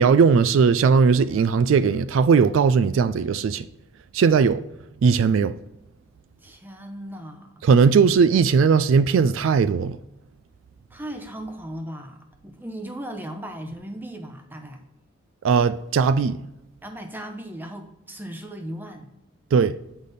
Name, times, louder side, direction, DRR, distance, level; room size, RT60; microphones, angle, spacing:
voice 1, 0.0-3.6 4.1-4.6 5.0-5.5 7.6-10.0 15.4-16.4 19.5-19.8, right 5 dB, 75° right, 0.3 m, -18 dB
voice 2, 6.4-7.5 10.9-12.2 12.4-14.8 16.8-19.1, right 1 dB, 10° right, 0.7 m, -37 dB
8.2 x 5.1 x 4.1 m
head